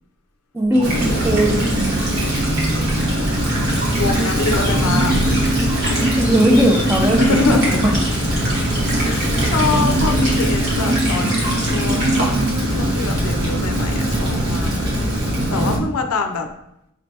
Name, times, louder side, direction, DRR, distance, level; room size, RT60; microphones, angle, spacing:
voice 1, 0.5-1.6 5.9-7.9, right 1 dB, 10° right, 1 dB, 0.5 m, -18 dB
sound 1, 0.7-12.2, right 1 dB, 55° right, 1.3 m, -29 dB
Rain, 0.8-15.8, right 1 dB, 75° right, 1.1 m, -20 dB
voice 2, 2.1-2.7 4.0-5.1 7.2-7.7 8.9-12.5 12.8-14.7 15.5-16.5, left 4 dB, 85° left, 6 dB, 0.5 m, -24 dB
Bird, 3.1-10.3, left 1 dB, 15° left, 0.8 m, -35 dB
5.3 x 3.2 x 2.7 m, 0.80 s
head